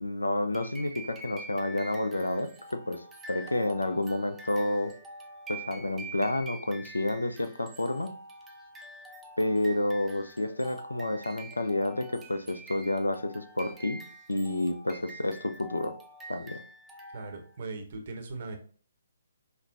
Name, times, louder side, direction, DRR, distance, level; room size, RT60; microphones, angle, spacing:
voice 1, 0.0-4.9 5.5-8.1 9.4-15.9 16.3-16.6, left 1 dB, 80° left, 10 dB, 0.4 m, -30 dB
sound 1, 0.5-17.6, right 1 dB, 10° right, 0.5 m, -46 dB
voice 2, 17.1-18.6, right 3 dB, 45° right, 4 dB, 0.7 m, -39 dB
5.1 x 2.1 x 2.5 m, 0.42 s
figure-of-eight pair, 130°, 0 cm